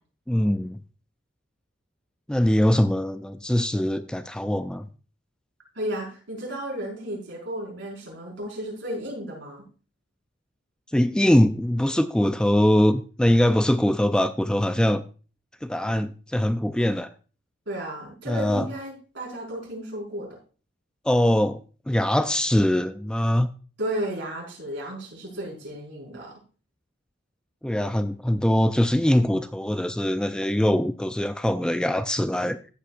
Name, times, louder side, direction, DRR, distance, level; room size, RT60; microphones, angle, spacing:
voice 1, 0.3-0.8 2.3-4.9 10.9-15.0 15.6-17.1 18.3-18.7 21.1-21.6 21.9-23.5 27.6-32.6, left 1 dB, 5° left, 10 dB, 0.3 m, -22 dB
voice 2, 5.7-9.6 17.7-20.4 23.8-26.3, right 1 dB, 70° right, -3 dB, 5.3 m, -33 dB
14.5 x 8.4 x 2.6 m, 0.37 s
head